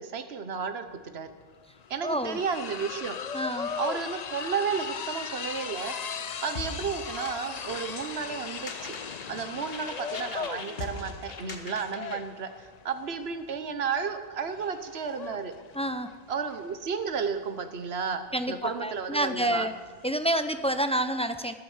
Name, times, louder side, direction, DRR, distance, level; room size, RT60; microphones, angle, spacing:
voice 1, 0.0-1.3 1.9-3.2 3.8-5.9 6.4-15.5 16.3-19.7, right 6 dB, 80° right, 9 dB, 1.3 m, -33 dB
sound 1, 0.9-1.0 1.3-20.1, left 7 dB, 50° left, 0.6 m, -39 dB
voice 2, 2.0-2.4 3.3-3.7 15.7-16.1 18.3-19.7 20.0-21.5, right 1 dB, 5° left, 9 dB, 0.5 m, -28 dB
sound 2, 6.6-12.2, left 3 dB, 65° left, 1.6 m, -41 dB
13.0 x 11.5 x 7.2 m, 1.5 s
omnidirectional pair, 1.0 m